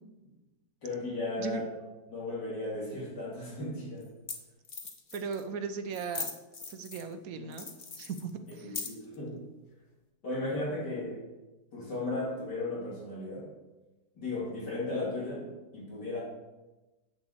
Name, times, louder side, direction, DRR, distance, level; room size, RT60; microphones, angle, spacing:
voice 1, 0.8-1.7 2.1-4.1 8.6-9.5 10.2-11.2 11.7-13.5 14.2-16.2, left 2 dB, 65° left, -5 dB, 2.9 m, -35 dB
sound 1, 3.2-3.3 4.0-4.1 4.3-4.4 4.6-5.4 5.9-7.1 7.5-9.2, left 4 dB, 35° left, 0.9 m, -40 dB
voice 2, 5.1-6.3 6.7-7.7 8.0-8.8, right 5 dB, 60° right, 8 dB, 1.1 m, -37 dB
8.4 x 6.9 x 6.2 m, 1.1 s
omnidirectional pair, 2.0 m